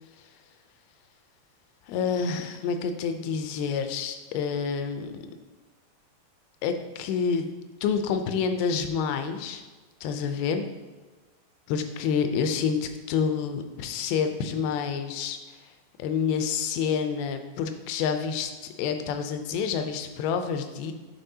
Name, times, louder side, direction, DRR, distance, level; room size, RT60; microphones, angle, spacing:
voice 1, 1.9-5.2 6.6-7.5 7.8-9.6 10.0-10.7 11.7-15.4 16.0-20.9, left 6 dB, 85° left, 7 dB, 2.5 m, -28 dB
8.9 x 4.6 x 2.7 m, 1.3 s
omnidirectional pair, 4.4 m